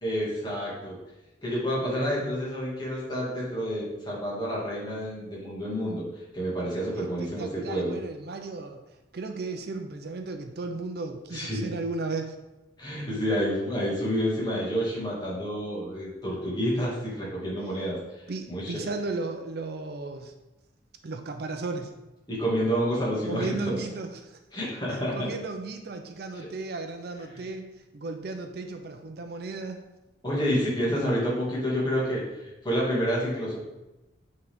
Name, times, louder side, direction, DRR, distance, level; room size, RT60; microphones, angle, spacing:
voice 1, 0.0-1.0 1.4-6.0 6.3-8.0 11.3-11.6 12.8-18.0 18.5-18.8 22.3-23.8 24.5-25.3 30.2-32.2 32.6-33.6, equal, 20° left, -6 dB, 2.0 m, -29 dB
voice 2, 6.9-8.8 9.1-12.4 17.7-17.8 18.3-20.3 21.0-21.9 23.3-24.4 24.9-27.7 27.9-29.8, right 3 dB, 55° right, 6 dB, 0.5 m, -35 dB
8.3 x 3.8 x 3.5 m, 1.0 s
head